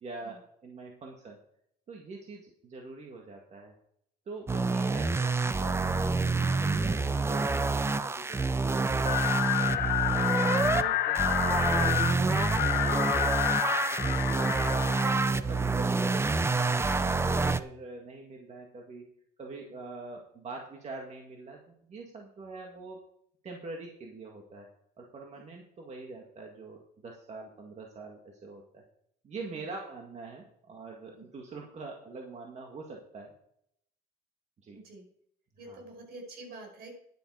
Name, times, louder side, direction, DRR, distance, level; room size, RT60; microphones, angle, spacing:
voice 1, 0.0-1.4 1.9-3.7 4.3-6.2 6.5-14.9 15.2-19.1 19.4-23.0 23.4-24.7 25.0-28.8 29.2-33.3 34.6-34.8 35.7-35.8, right 3 dB, 40° right, 1 dB, 1.9 m, -45 dB
sound 1, 4.5-10.8 11.2-17.6, right 3 dB, 15° right, 0.6 m, -27 dB
sound 2, 9.0-15.3, left 11 dB, 70° left, 1.1 m, -29 dB
voice 2, 34.7-35.1 35.6-36.9, right 2 dB, 65° right, 2 dB, 5.0 m, -47 dB
10.5 x 9.0 x 4.9 m, 0.71 s
cardioid pair, 110°, 17 cm